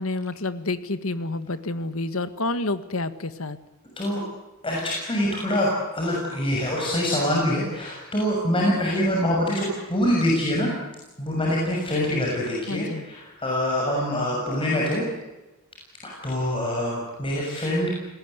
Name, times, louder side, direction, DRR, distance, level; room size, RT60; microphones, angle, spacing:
voice 1, 0.0-3.6 12.7-13.1, left 2 dB, 65° left, 12 dB, 1.7 m, -29 dB
voice 2, 4.6-10.7 11.2-15.0 16.0-18.0, left 1 dB, 25° left, -3 dB, 6.8 m, -25 dB
28.5 x 20.5 x 8.2 m, 1.1 s
head